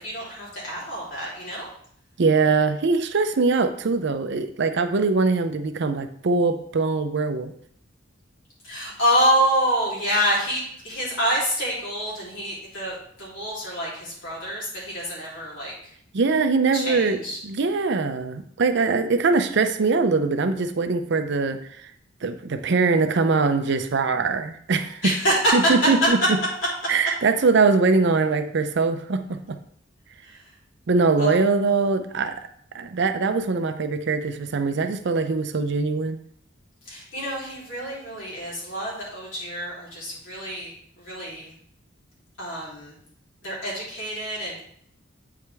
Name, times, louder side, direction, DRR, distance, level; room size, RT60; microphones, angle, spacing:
voice 1, 0.0-1.7 8.6-15.7 16.7-17.4 25.0-25.5 31.2-31.3 36.9-41.5 42.4-42.9 43.4-44.6, equal, 70° left, -6 dB, 3.2 m, -27 dB
voice 2, 2.2-7.5 16.1-21.6 22.2-25.1 25.5-26.4 26.9-29.6 30.9-32.4 32.7-36.2, right 4 dB, 60° right, 9 dB, 0.5 m, -22 dB
8.4 x 4.9 x 3.4 m, 0.65 s
head